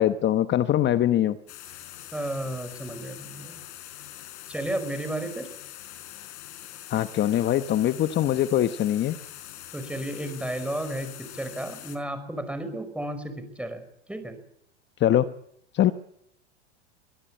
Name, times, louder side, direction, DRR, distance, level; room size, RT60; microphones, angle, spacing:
voice 1, 0.0-1.4 6.9-9.2 15.0-15.3 15.7-15.9, left 12 dB, 30° left, 11 dB, 1.0 m, -22 dB
sound 1, 1.5-12.0, left 12 dB, 70° left, 4.5 m, -43 dB
voice 2, 2.1-3.6 4.5-5.5 9.7-13.8 14.1-14.4, right 1 dB, 5° right, 9 dB, 5.2 m, -33 dB
24.0 x 18.0 x 8.7 m, 0.74 s
hypercardioid pair, 110°, 35 cm